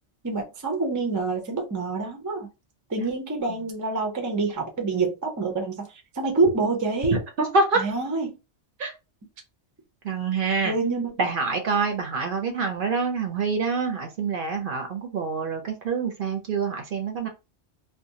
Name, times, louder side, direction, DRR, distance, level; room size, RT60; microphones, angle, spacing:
voice 1, 0.2-2.5 2.9-7.2 7.7-8.4 10.6-11.2, right 3 dB, 25° right, 0.4 m, -26 dB
voice 2, 7.4-7.8 8.8-8.9 10.0-10.8 11.2-17.3, right 4 dB, 60° right, 0.7 m, -26 dB
2.5 x 2.2 x 2.7 m
omnidirectional pair, 1.2 m